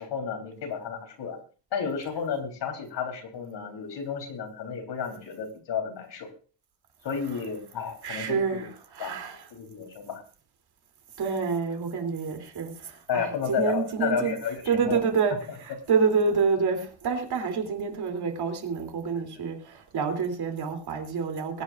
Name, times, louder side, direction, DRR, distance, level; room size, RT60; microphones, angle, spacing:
voice 1, 0.0-1.4 1.7-6.3 7.0-8.7 9.0-9.1 9.5-10.2 13.1-15.0 19.1-19.2, left 6 dB, 65° left, 3.6 m, -32 dB
voice 2, 8.0-9.4 11.2-14.4 14.7-21.6, right 5 dB, 55° right, 3.1 m, -28 dB
22.0 x 9.8 x 2.5 m
cardioid pair, 145°, 45 cm